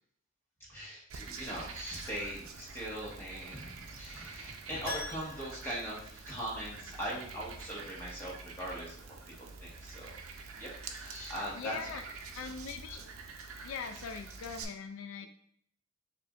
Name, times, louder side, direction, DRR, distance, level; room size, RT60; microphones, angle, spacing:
voice 1, 0.7-10.2 10.5-12.0 12.4-12.5 15.2-15.3, equal, 10° left, -6 dB, 1.3 m, -41 dB
Frog, 1.1-14.6, right 4 dB, 85° right, 0.5 m, -47 dB
Keyboard (musical), 4.8-6.9 7.2-7.3 10.0-10.1 10.3-10.4, left 3 dB, 40° left, 0.9 m, -45 dB
voice 2, 11.5-12.0 12.3-13.1 13.6-15.3, left 5 dB, 75° left, 6 dB, 0.3 m, -41 dB
6.7 x 2.6 x 2.4 m, 0.63 s
head